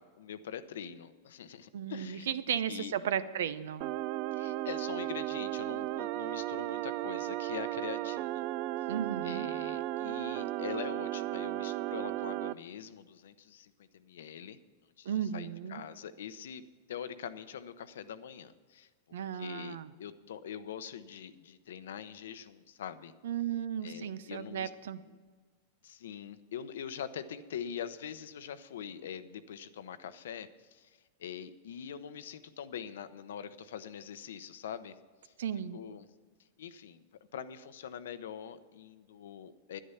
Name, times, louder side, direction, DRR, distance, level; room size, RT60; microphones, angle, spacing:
voice 1, 0.0-2.3 2.7-2.9 4.3-8.4 9.2-14.6 15.0-16.6 16.9-18.9 19.3-23.1 23.8-24.7 25.1-25.2 25.8-35.0 35.2-35.3 35.7-36.1 36.6-37.0 37.3-39.8, left 8 dB, 85° left, 12 dB, 0.8 m, -43 dB
voice 2, 1.7-3.9 8.9-9.5 15.0-15.8 19.1-19.9 23.2-25.0 35.4-35.8, right 9 dB, 80° right, 14 dB, 0.7 m, -35 dB
sound 1, 3.8-12.5, right 15 dB, 45° right, 0.3 m, -35 dB
11.0 x 10.0 x 5.7 m, 1.5 s
supercardioid pair, 140°, 0 cm